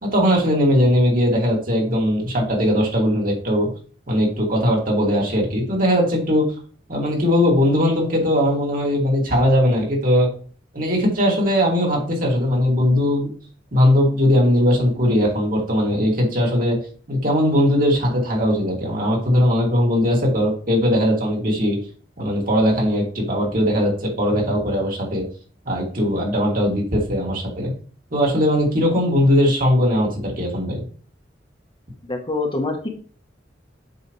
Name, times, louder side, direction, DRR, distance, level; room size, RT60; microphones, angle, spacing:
voice 1, 0.0-3.7 4.1-6.5 6.9-10.3 10.7-13.3 13.7-16.8 17.1-21.8 22.2-25.2 25.7-27.7 28.1-30.8, equal, 50° right, -2 dB, 2.7 m, -19 dB
voice 2, 32.1-32.9, left 2 dB, 30° left, 3 dB, 1.2 m, -25 dB
7.8 x 6.0 x 3.3 m, 0.42 s
head